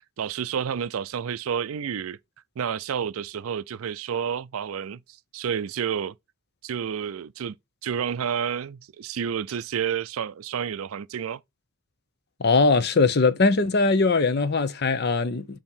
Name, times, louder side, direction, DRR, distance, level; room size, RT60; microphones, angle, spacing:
voice 1, 0.2-2.2 2.6-5.0 5.3-6.1 6.6-7.6 7.8-11.4, right 8 dB, 80° right, 0.4 m, -30 dB
voice 2, 12.4-15.6, left 3 dB, 50° left, 0.7 m, -21 dB
7.1 x 2.9 x 5.5 m
head